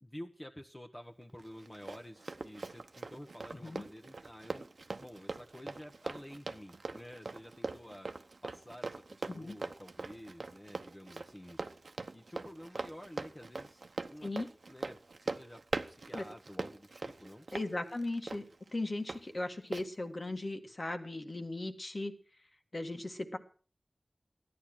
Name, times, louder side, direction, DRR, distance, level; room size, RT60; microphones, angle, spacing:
voice 1, 0.0-4.7 5.0-8.1 8.4-11.6 12.1-14.3 14.7-17.5, equal, 25° left, 1 dB, 1.2 m, -50 dB
Run, 1.4-19.2 19.7-19.9, right 3 dB, 90° right, 0.9 m, -42 dB
voice 2, 17.5-18.4 18.7-22.1 22.7-23.4, left 2 dB, 55° left, 5 dB, 1.9 m, -37 dB
14.0 x 10.5 x 6.2 m, 0.41 s
wide cardioid pair, 55°, 0 cm